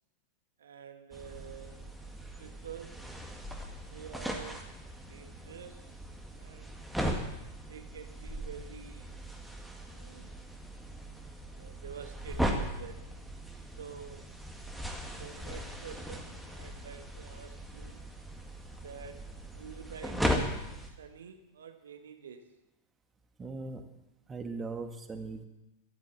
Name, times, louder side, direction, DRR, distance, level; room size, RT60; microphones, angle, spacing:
voice 1, 0.6-1.8 2.2-3.1 3.9-4.7 5.1-5.9 6.4-6.8 7.7-9.2 9.8-10.4 11.5-13.1 13.8-14.3 15.2-18.0 18.8-20.4 20.8-22.5, right 7 dB, 65° right, 8 dB, 1.5 m, -48 dB
sound 1, 1.1-20.9, equal, ahead, 1.9 m, -38 dB
voice 2, 23.4-23.9 24.3-25.4, right 3 dB, 20° right, 6 dB, 1.6 m, -39 dB
13.5 x 11.0 x 7.4 m, 0.96 s
figure-of-eight pair, 90°, 0 cm